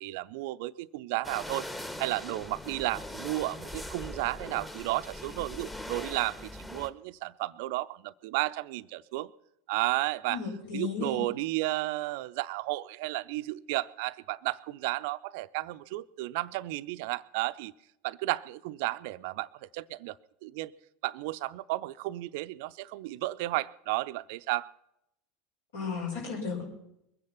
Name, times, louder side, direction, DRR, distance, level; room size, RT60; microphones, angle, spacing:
voice 1, 0.0-1.7 2.0-9.3 9.7-10.4 10.7-17.7 18.0-20.2 20.4-20.7 21.0-24.7, right 19 dB, 60° right, 16 dB, 0.5 m, -33 dB
sound 1, 1.2-6.9, left 1 dB, 10° left, 1.2 m, -41 dB
voice 2, 10.3-11.2 25.7-26.6, left 5 dB, 70° left, -1 dB, 5.7 m, -34 dB
22.0 x 9.6 x 5.7 m, 0.80 s
figure-of-eight pair, 80°, 0 cm